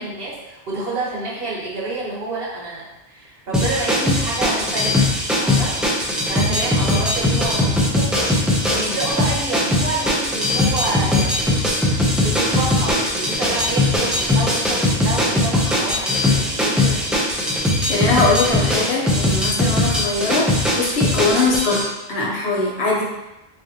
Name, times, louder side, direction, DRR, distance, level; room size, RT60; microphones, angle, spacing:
voice 1, 0.0-5.2 5.4-5.8 6.2-11.4 12.1-17.1 21.4-21.6, right 2 dB, 65° right, -5 dB, 1.3 m, -28 dB
sound 1, 3.5-21.9, left 1 dB, ahead, 0.3 m, -20 dB
voice 2, 17.9-20.5 20.7-21.8 22.1-23.0, left 3 dB, 85° left, -3 dB, 1.1 m, -21 dB
5.0 x 2.6 x 2.8 m, 0.97 s
omnidirectional pair, 1.1 m